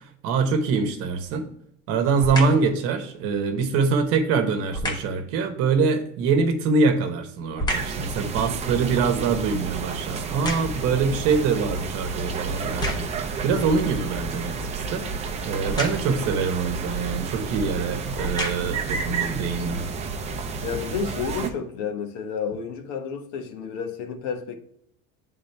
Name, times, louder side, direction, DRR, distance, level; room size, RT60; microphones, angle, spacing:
voice 1, 0.2-1.5 1.9-15.0 15.5-19.8, right 4 dB, 50° right, 1.0 m, -24 dB
sound 1, 1.1-1.4 2.2-2.7 4.7-5.2 6.6-8.0 8.5-11.0 11.7-11.8 12.6-13.3 15.6-16.2 17.2-17.4 18.0-18.9 19.5-19.6, left 1 dB, 15° left, 0.7 m, -32 dB
sound 2, 7.7-21.5, right 4 dB, 20° right, 0.5 m, -31 dB
voice 2, 20.6-24.6, left 6 dB, 90° left, 1.2 m, -31 dB
8.7 x 3.7 x 3.3 m
cardioid pair, 180°, 29 cm